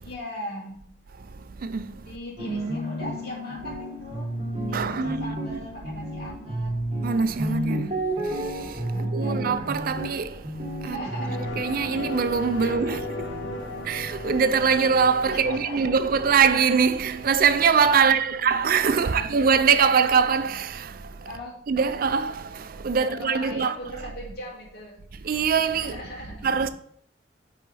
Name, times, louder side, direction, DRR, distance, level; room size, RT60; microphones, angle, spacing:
voice 1, 0.0-0.8 2.0-4.3 4.6-6.7 7.4-8.0 8.9-9.4 10.8-12.1 12.6-13.0 15.3-16.0 18.0-19.3 21.2-21.6 23.0-25.0 25.8-26.5, left 1 dB, 60° left, 2.4 m, -39 dB
sound 1, 2.4-11.6, right 1 dB, 30° right, 1.4 m, -31 dB
voice 2, 4.7-5.6 7.0-7.8 8.6-8.7 9.0-10.3 10.8-13.3 13.6-21.3 21.7-23.8 24.0-24.1 25.2-26.0 26.4-26.7, right 6 dB, 55° right, 0.4 m, -23 dB
sound 2, 11.0-20.0 20.3-20.4, left 1 dB, 75° left, 1.6 m, -37 dB
8.5 x 4.1 x 4.1 m
head